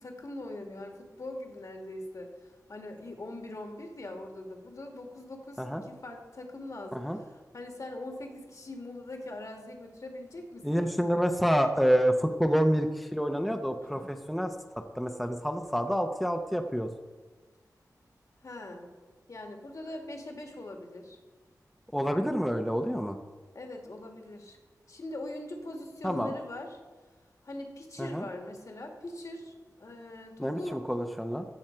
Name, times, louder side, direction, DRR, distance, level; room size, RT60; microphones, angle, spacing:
voice 1, 0.0-10.9 13.8-14.1 18.4-18.9 19.3-21.2 23.5-24.6 24.9-26.8 27.4-30.8, left 1 dB, 55° left, 3 dB, 1.9 m, -42 dB
voice 2, 10.6-16.9 21.9-23.2 26.0-26.3 28.0-28.2 30.4-31.4, equal, ahead, 5 dB, 0.7 m, -28 dB
15.0 x 6.4 x 4.5 m, 1.3 s
wide cardioid pair, 85°, 7 cm